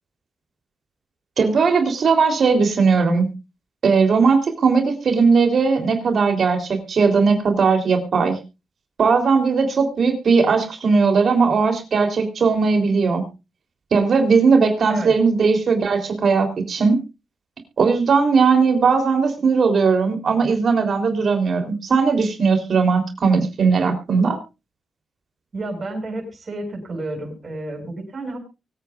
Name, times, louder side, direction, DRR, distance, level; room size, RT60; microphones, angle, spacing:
voice 1, 1.4-3.3 3.8-8.4 9.0-13.3 13.9-17.0 17.8-24.4, right 5 dB, 60° right, 5 dB, 3.7 m, -18 dB
voice 2, 25.5-28.4, right 2 dB, 45° right, 3 dB, 7.9 m, -31 dB
24.0 x 9.3 x 2.5 m, 0.28 s
cardioid pair, 75°, 0 cm